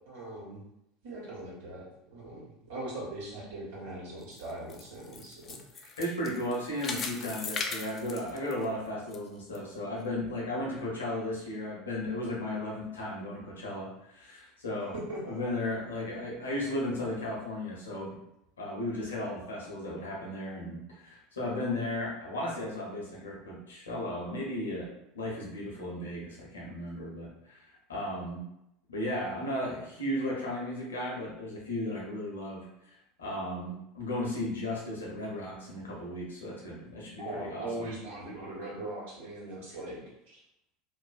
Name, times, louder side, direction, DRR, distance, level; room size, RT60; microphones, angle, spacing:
voice 1, 0.0-0.6 1.0-1.8 2.1-5.9 14.9-15.4 37.2-40.4, right 1 dB, 70° right, -7 dB, 1.2 m, -40 dB
sound 1, 4.2-9.2 9.5-9.6 10.2-10.3, left 4 dB, 35° left, 0.3 m, -38 dB
voice 2, 6.0-14.9 15.2-18.2 18.6-27.6 27.9-28.4 28.9-32.7 33.2-37.9, left 1 dB, 80° left, -3 dB, 0.7 m, -35 dB
2.5 x 2.1 x 2.4 m, 0.83 s
figure-of-eight pair, 75°, 0 cm